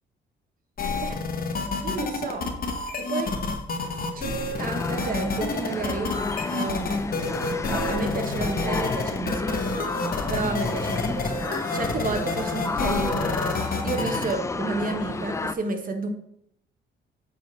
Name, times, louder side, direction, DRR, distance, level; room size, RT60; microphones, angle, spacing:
sound 1, 0.8-14.3, left 3 dB, 45° left, 1.1 m, -29 dB
voice 1, 1.8-2.5 3.1-3.3 4.1-6.1 6.5-6.9 7.6-9.9 10.3-16.1, right 3 dB, 45° right, 5 dB, 1.2 m, -31 dB
sound 2, 4.6-15.5, left 3 dB, 15° left, 0.3 m, -31 dB
7.5 x 4.2 x 4.1 m, 0.74 s
cardioid pair, 90°, 20 cm